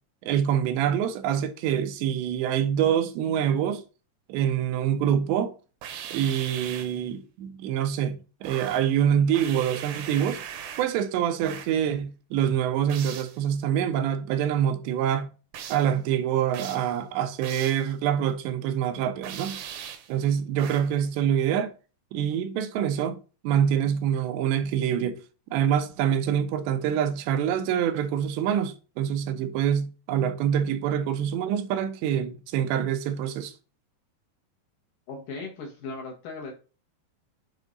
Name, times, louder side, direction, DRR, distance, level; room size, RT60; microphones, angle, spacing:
voice 1, 0.2-3.8 4.3-5.5 6.1-10.4 10.8-15.3 15.7-19.6 20.1-21.7 22.1-23.2 23.4-25.2 25.5-33.5, right 9 dB, 90° right, 3.0 m, -25 dB
sound 1, 5.8-7.0 8.4-9.0 9.3-11.0 11.4-11.8 12.9-13.4 15.5-15.9 16.5-16.9 17.4-17.9 19.2-20.1 20.6-21.0, right 9 dB, 75° right, 2.4 m, -39 dB
voice 2, 35.1-36.5, left 3 dB, 65° left, 2.2 m, -37 dB
7.3 x 4.4 x 3.9 m
omnidirectional pair, 4.9 m